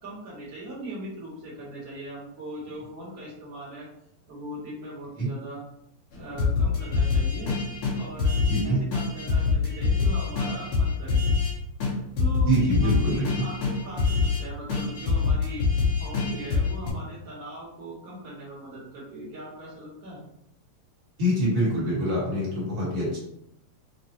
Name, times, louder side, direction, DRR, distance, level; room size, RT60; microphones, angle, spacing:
voice 1, 0.0-3.9 4.3-5.6 6.1-7.6 7.9-8.3 8.6-11.2 12.2-12.6 12.8-15.7 16.0-20.2, right 1 dB, 75° right, -8 dB, 0.8 m, -40 dB
sound 1, 6.4-8.6 8.9-11.5 11.8-11.9 12.2-14.4 14.7-16.9, left 5 dB, 75° left, 2.4 m, -24 dB
voice 2, 8.5-8.8 12.5-13.4 21.2-23.2, equal, 45° right, -6 dB, 1.4 m, -25 dB
5.3 x 2.1 x 2.8 m, 0.77 s
omnidirectional pair, 3.4 m